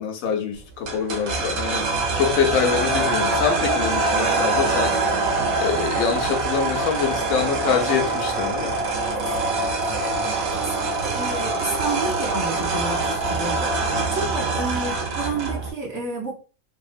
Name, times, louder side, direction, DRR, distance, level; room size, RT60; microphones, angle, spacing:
voice 1, 0.0-1.9 2.2-4.9 5.6-8.8, left 7 dB, 80° left, 1.0 m, -25 dB
sound 1, 0.9-15.7, right 3 dB, 90° right, 1.1 m, -24 dB
voice 2, 9.1-16.3, right 3 dB, 55° right, 1.0 m, -31 dB
2.8 x 2.7 x 2.4 m
omnidirectional pair, 1.4 m